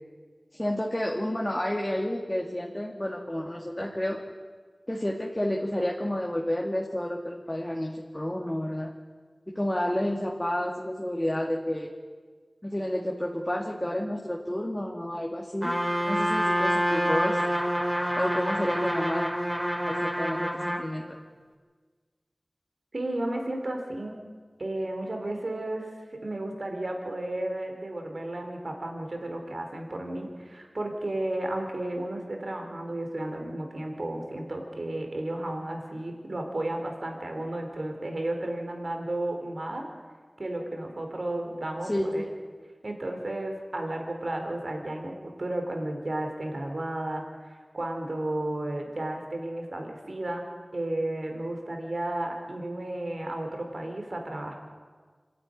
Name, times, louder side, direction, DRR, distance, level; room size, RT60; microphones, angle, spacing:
voice 1, 0.5-4.2 4.9-8.9 9.5-11.9 12.6-15.8 16.1-17.4 18.1-19.3 19.9-21.0 41.9-42.3, left 1 dB, 20° left, 0 dB, 2.3 m, -30 dB
Trumpet, 15.6-20.9, equal, 15° right, 3.7 m, -27 dB
voice 2, 22.9-24.2 24.6-25.9 26.2-39.9 40.4-42.2 42.8-50.4 50.7-54.5, right 1 dB, 75° right, 3 dB, 3.8 m, -33 dB
25.5 x 12.0 x 9.7 m, 1.5 s
wide cardioid pair, 40°, 0 cm